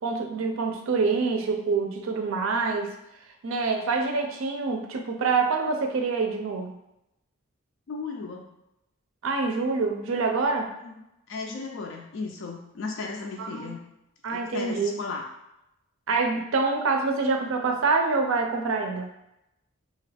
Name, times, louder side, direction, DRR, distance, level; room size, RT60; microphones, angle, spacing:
voice 1, 0.0-2.9 3.4-6.7 9.2-10.7 13.4-13.7 14.2-14.9 16.1-19.1, right 4 dB, 65° right, 3 dB, 0.4 m, -26 dB
voice 2, 7.9-8.5 10.8-11.0 11.3-13.8 14.2-15.3, left 4 dB, 60° left, 1 dB, 0.4 m, -35 dB
2.8 x 2.3 x 3.3 m, 0.86 s
head